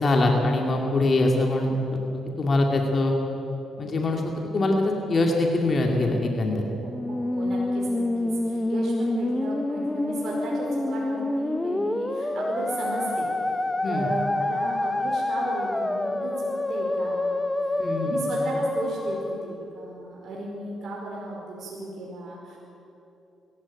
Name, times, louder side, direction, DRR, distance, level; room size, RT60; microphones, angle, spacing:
voice 1, 0.0-1.7 2.1-3.1 3.8-6.6 13.8-14.1 17.8-18.2, left 2 dB, 40° left, 1 dB, 2.6 m, -23 dB
Musical instrument, 6.7-20.1, left 2 dB, 15° left, 1.0 m, -27 dB
voice 2, 7.1-13.3 13.9-22.6, right 2 dB, 60° right, -4 dB, 5.0 m, -35 dB
22.0 x 15.0 x 9.0 m, 2.8 s
cardioid pair, 90°, 0 cm